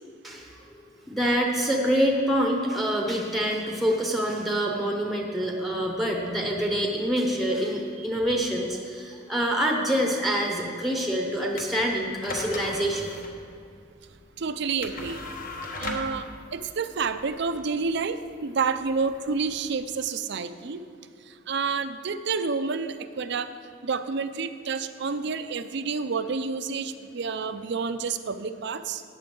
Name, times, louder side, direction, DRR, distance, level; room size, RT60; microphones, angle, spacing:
voice 1, 0.2-0.6 1.1-13.1, equal, ahead, 0 dB, 0.9 m, -26 dB
sound 1, 11.5-20.0, left 2 dB, 45° left, 1.2 m, -39 dB
voice 2, 14.4-15.2 15.8-20.8 21.5-23.5 23.8-29.0, right 5 dB, 60° right, 12 dB, 0.5 m, -29 dB
14.5 x 8.9 x 3.9 m, 2.4 s
head